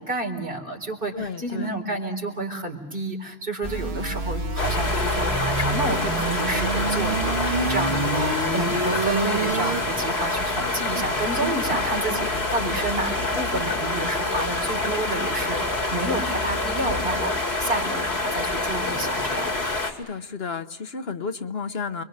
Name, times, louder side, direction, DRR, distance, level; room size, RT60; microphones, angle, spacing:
voice 1, 0.0-19.5, right 2 dB, 60° right, 3 dB, 4.3 m, -30 dB
voice 2, 1.1-1.7 7.5-8.1 19.8-22.0, left 5 dB, 75° left, 9 dB, 1.4 m, -32 dB
sound 1, 3.6-9.8, right 3 dB, 80° right, 1.8 m, -27 dB
sound 2, 4.6-19.9, left 2 dB, 90° left, 2.8 m, -26 dB
30.0 x 23.0 x 6.5 m, 1.0 s
omnidirectional pair, 1.0 m